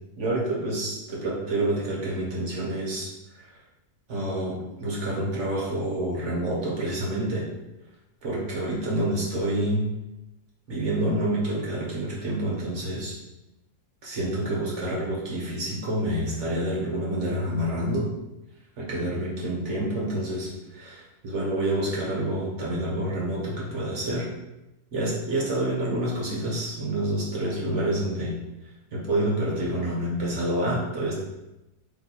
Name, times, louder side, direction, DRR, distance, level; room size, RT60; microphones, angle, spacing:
voice 1, 0.2-3.1 4.1-7.5 8.2-9.9 10.7-13.1 14.0-18.1 18.8-24.3 24.9-28.4 28.9-31.2, right 1 dB, 50° right, -4 dB, 1.2 m, -28 dB
3.3 x 3.0 x 4.1 m, 0.96 s
omnidirectional pair, 1.7 m